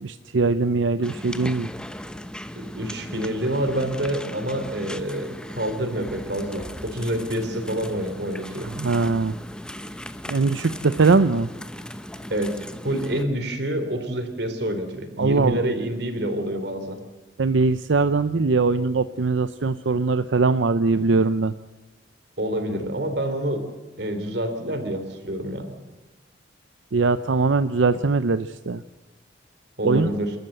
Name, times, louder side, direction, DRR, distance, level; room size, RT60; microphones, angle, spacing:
voice 1, 0.0-1.7 8.6-9.3 10.3-11.5 15.2-15.7 17.4-21.5 26.9-28.8 29.8-30.1, right 3 dB, 90° right, 12 dB, 0.6 m, -21 dB
sound 1, 1.0-13.2, left 1 dB, 5° left, 0.9 m, -37 dB
voice 2, 2.5-8.7 12.3-17.0 22.4-23.6 24.0-25.7 29.8-30.3, right 1 dB, 60° right, 8 dB, 3.4 m, -27 dB
28.5 x 13.5 x 7.9 m, 1.1 s
head